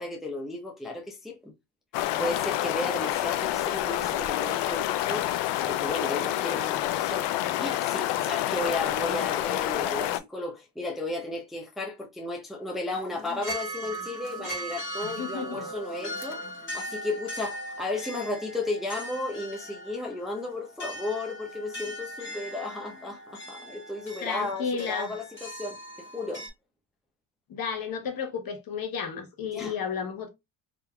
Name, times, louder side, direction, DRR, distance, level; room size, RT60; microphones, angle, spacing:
voice 1, 0.0-1.5 2.2-5.3 5.7-16.4 16.7-26.5 29.5-29.7, left 2 dB, ahead, 0.7 m, -34 dB
sound 1, 1.9-10.2, left 14 dB, 65° left, 0.5 m, -28 dB
voice 2, 8.8-9.3 15.0-15.7 24.2-25.1 27.5-30.3, left 6 dB, 50° left, 1.0 m, -33 dB
sound 2, 12.9-26.5, right 1 dB, 25° left, 1.6 m, -39 dB
3.7 x 2.7 x 2.2 m
supercardioid pair, 85°, 47 cm